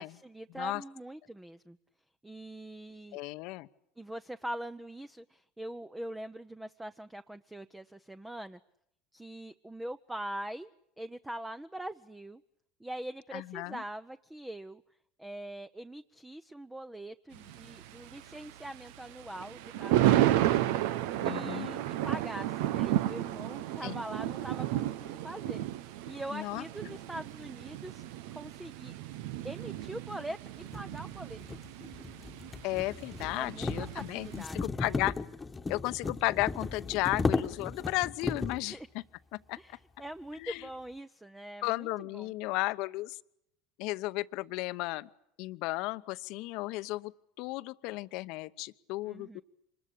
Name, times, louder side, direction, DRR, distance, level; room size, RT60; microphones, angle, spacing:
voice 1, 0.0-1.8 2.2-3.2 4.0-8.6 9.1-10.7 11.0-12.4 12.8-14.8 15.2-20.4 21.2-25.6 26.1-28.0 28.3-28.9 29.4-31.6 33.4-34.9 38.7-38.9 39.6-42.3 49.0-49.4, right 1 dB, 10° right, 11 dB, 0.9 m, -43 dB
voice 2, 3.1-3.7 13.3-13.8 21.2-21.7 23.8-24.0 26.3-26.6 32.6-34.3 34.5-35.1 35.7-39.0 39.3-39.6 40.4-40.7 41.6-43.2 43.8-45.1 45.4-47.1 47.4-49.4, left 20 dB, 65° left, 14 dB, 0.9 m, -34 dB
Thunder, 17.3-34.4, right 13 dB, 70° right, 0.9 m, -32 dB
sound 1, 29.8-29.9 30.7-38.7, left 3 dB, 20° left, 1.4 m, -35 dB
26.0 x 21.0 x 8.6 m, 0.76 s
hypercardioid pair, 85°, 0 cm